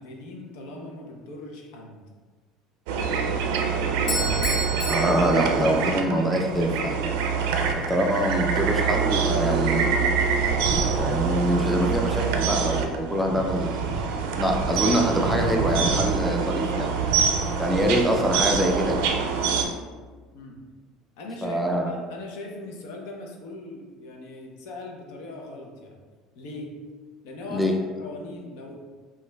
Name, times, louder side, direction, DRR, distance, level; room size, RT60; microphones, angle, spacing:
voice 1, 0.0-2.0 20.3-20.5 21.2-26.0 26.3-26.7 27.2-28.8, left 2 dB, 80° left, 0 dB, 0.7 m, -40 dB
sound 1, 2.9-19.7, right 5 dB, 85° right, 0.4 m, -25 dB
Bell / Doorbell, 4.1-6.2, equal, 40° left, 1.1 m, -31 dB
voice 2, 4.9-6.9 7.7-9.9 11.0-13.8 14.4-16.9 17.6-19.0 21.4-21.9 27.5-27.7, equal, 5° right, 1 dB, 0.4 m, -24 dB
5.3 x 2.4 x 2.2 m, 1.4 s
cardioid pair, 125°, 0 cm